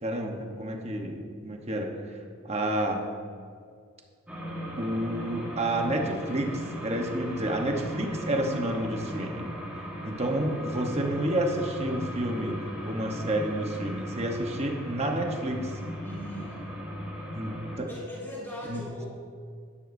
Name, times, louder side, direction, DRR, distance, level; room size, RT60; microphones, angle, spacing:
voice 1, 0.0-1.9 2.4-3.0 4.8-9.5 10.0-12.6 12.8-15.7 17.3-17.9 18.7-18.8, right 1 dB, 30° right, 2 dB, 1.1 m, -30 dB
sound 1, 4.3-17.8, equal, 5° right, 1.6 m, -38 dB
voice 2, 16.0-16.6 17.9-19.1, left 1 dB, 10° left, -7 dB, 2.4 m, -39 dB
12.0 x 11.0 x 2.7 m, 2.1 s
head